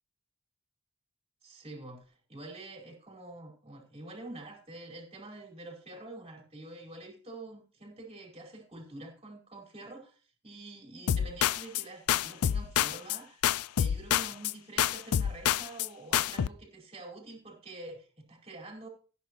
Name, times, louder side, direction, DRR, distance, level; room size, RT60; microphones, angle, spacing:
voice 1, 1.4-13.4 13.7-18.9, right 2 dB, 30° right, 0 dB, 4.9 m, -47 dB
sound 1, 11.1-11.8 12.1-13.2 13.4-14.5 14.8-15.9 16.1-16.5, left 10 dB, 90° left, 0.4 m, -27 dB
16.0 x 9.8 x 3.1 m, 0.39 s
head